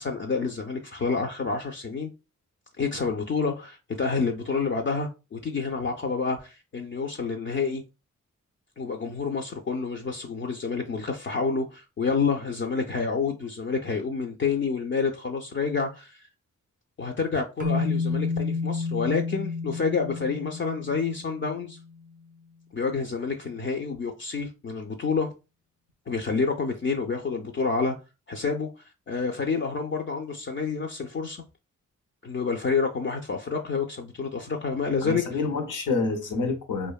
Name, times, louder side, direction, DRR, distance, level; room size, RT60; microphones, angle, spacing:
voice 1, 0.0-2.1 2.8-7.8 8.8-16.3 17.0-21.8 22.7-25.3 26.1-28.0 28.3-28.7 29.1-31.4 32.2-35.2, left 5 dB, 40° left, 0.4 m, -28 dB
sound 1, 17.6-21.9, left 4 dB, 25° right, 0.6 m, -30 dB
voice 2, 35.0-36.9, left 3 dB, 75° left, 0.7 m, -28 dB
2.5 x 2.1 x 2.3 m
cardioid pair, 45°, 31 cm